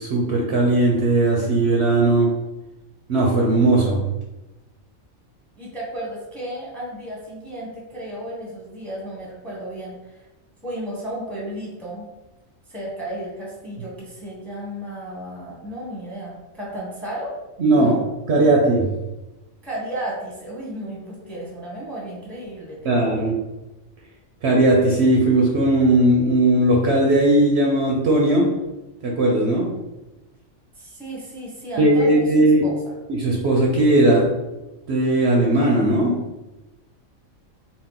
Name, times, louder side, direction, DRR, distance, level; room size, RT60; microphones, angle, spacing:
voice 1, 0.0-2.3 3.1-4.0 17.6-18.0 18.3-18.9 22.9-23.3 24.4-28.5 29.0-29.7 31.8-32.6 33.1-34.3 34.9-36.2, right 1 dB, 60° right, -2 dB, 0.8 m, -18 dB
voice 2, 5.6-10.3 10.6-12.1 12.7-17.3 17.8-18.0 19.6-23.2 30.7-32.3 32.6-33.0, right 1 dB, ahead, -4 dB, 0.8 m, -33 dB
3.9 x 2.2 x 3.7 m, 1.0 s
omnidirectional pair, 1.4 m